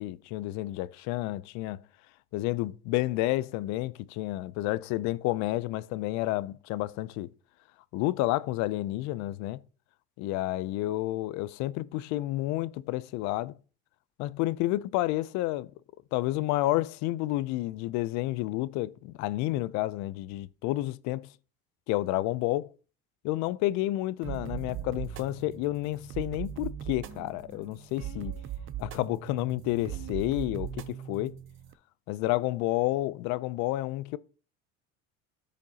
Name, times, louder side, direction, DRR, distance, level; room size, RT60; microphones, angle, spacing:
voice 1, 0.0-1.8 2.3-7.3 7.9-9.6 10.2-13.5 14.2-15.7 16.1-21.3 21.9-22.7 23.2-28.3 28.8-31.4 32.1-34.2, left 17 dB, 70° left, 0.5 m, -30 dB
sound 1, 24.2-31.7, right 10 dB, 45° right, 0.6 m, -39 dB
14.0 x 5.2 x 2.8 m
supercardioid pair, 105°, 29 cm